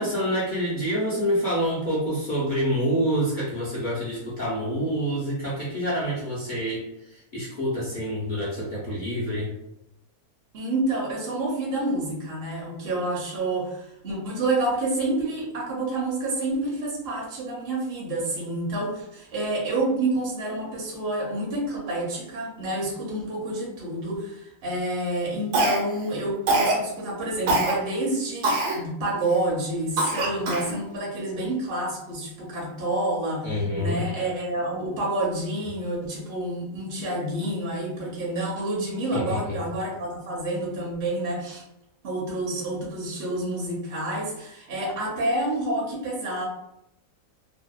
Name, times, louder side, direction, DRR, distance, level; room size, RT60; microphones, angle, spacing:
voice 1, 0.0-9.5 33.4-34.0 39.1-39.5, equal, 55° left, -8 dB, 0.5 m, -27 dB
voice 2, 10.5-41.6 42.0-46.4, right 2 dB, 55° right, -4 dB, 0.7 m, -28 dB
Cough, 25.5-26.1 26.5-26.8 27.5-27.7 28.4-28.8 29.3-29.4 30.0-30.7, right 2 dB, 75° right, 1.0 m, -23 dB
2.7 x 2.0 x 2.3 m, 0.85 s
omnidirectional pair, 1.5 m